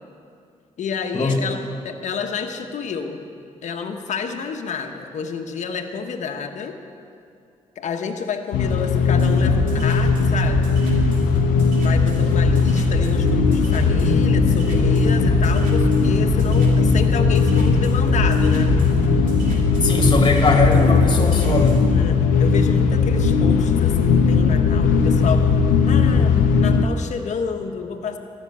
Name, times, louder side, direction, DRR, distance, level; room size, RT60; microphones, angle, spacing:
voice 1, 0.8-3.2 3.6-6.7 7.7-10.7 11.8-18.7 21.9-25.4 25.9-28.2, left 6 dB, 65° left, 5 dB, 1.2 m, -29 dB
sound 1, 8.5-26.8, left 5 dB, 90° left, 0.8 m, -18 dB
sound 2, 9.2-21.8, right 3 dB, 85° right, 2.5 m, -27 dB
voice 2, 19.8-21.8, left 3 dB, 35° left, 2 dB, 2.4 m, -20 dB
14.0 x 6.6 x 10.0 m, 2.5 s
cardioid pair, 70°, 13 cm